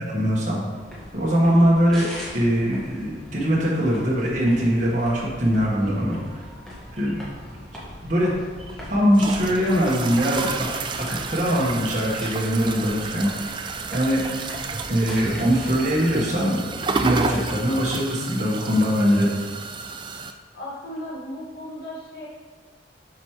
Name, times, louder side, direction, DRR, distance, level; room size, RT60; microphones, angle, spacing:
voice 1, 0.1-0.6 1.1-2.1 2.3-6.4 6.9-7.2 8.0-8.3 8.9-10.5 11.0-13.3 13.9-14.2 14.9-16.6 17.0-19.3, equal, 45° right, -6 dB, 1.6 m, -21 dB
sound 1, 0.7-16.1, equal, 5° left, 1.6 m, -41 dB
sound 2, 8.6-20.3, right 4 dB, 25° right, 0.3 m, -31 dB
voice 2, 20.5-22.3, left 1 dB, 80° left, -8 dB, 1.9 m, -35 dB
8.2 x 6.2 x 3.2 m, 1.4 s
head